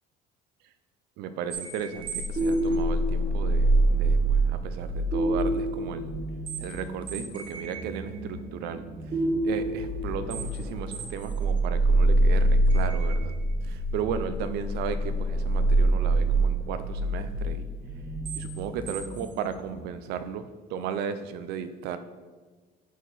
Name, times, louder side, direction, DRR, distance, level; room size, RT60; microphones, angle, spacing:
voice 1, 1.2-6.2 6.6-8.8 9.4-13.3 13.6-17.7 18.3-22.0, right 7 dB, 65° right, 11 dB, 0.6 m, -35 dB
sound 1, 1.5-19.9, right 1 dB, 25° right, 1.3 m, -26 dB
10.0 x 4.6 x 4.1 m, 1.4 s
cardioid pair, 175°, 18 cm